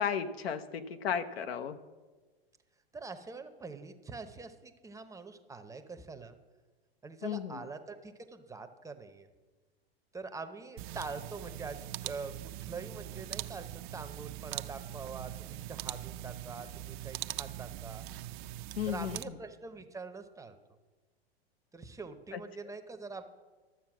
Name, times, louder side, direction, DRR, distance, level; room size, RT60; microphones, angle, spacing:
voice 1, 0.0-1.8 7.2-7.6 18.8-19.2 22.3-22.4, left 8 dB, 75° left, 9 dB, 0.9 m, -34 dB
voice 2, 2.9-6.4 7.0-9.3 10.1-18.0 18.9-20.6 21.7-23.3, right 4 dB, 10° right, 8 dB, 0.7 m, -44 dB
sound 1, 10.8-19.2, right 14 dB, 50° right, 0.6 m, -42 dB
12.0 x 7.2 x 6.0 m, 1.3 s
hypercardioid pair, 110°, 31 cm